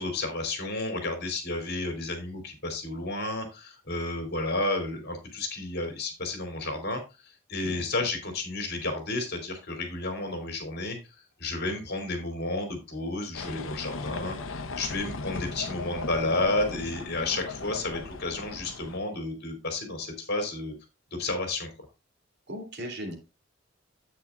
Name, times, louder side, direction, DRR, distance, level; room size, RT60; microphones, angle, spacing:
voice 1, 0.0-7.0 7.5-11.0 11.4-20.7 21.2-21.7, left 2 dB, 55° left, 5 dB, 3.1 m, -31 dB
voice 2, 7.6-8.1 22.5-23.1, equal, 55° right, 3 dB, 3.1 m, -38 dB
sound 1, 13.3-19.0, left 3 dB, 80° left, 0.9 m, -38 dB
9.9 x 8.4 x 2.5 m, 0.26 s
head